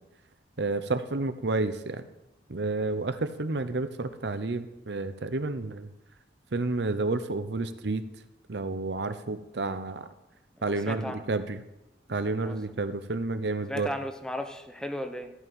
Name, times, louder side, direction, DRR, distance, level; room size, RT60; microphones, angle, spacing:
voice 1, 0.6-2.0 2.5-5.9 6.5-8.0 8.5-10.1 10.6-11.6 12.1-13.9, right 3 dB, 65° right, 11 dB, 0.8 m, -30 dB
voice 2, 10.6-11.2 12.4-12.8 13.7-15.3, left 1 dB, 5° left, 6 dB, 0.9 m, -36 dB
14.5 x 5.8 x 9.0 m, 0.94 s
head